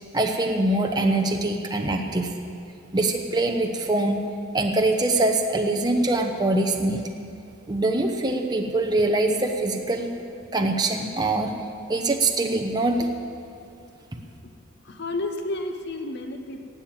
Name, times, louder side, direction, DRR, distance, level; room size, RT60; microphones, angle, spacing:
voice 1, 0.1-2.3 2.9-4.2 4.5-7.0 7.7-10.1 10.5-11.5 11.9-13.1, right 2 dB, 20° right, 2 dB, 0.9 m, -23 dB
voice 2, 14.8-16.7, left 2 dB, 50° left, 5 dB, 0.9 m, -31 dB
17.0 x 7.6 x 8.8 m, 2.6 s
head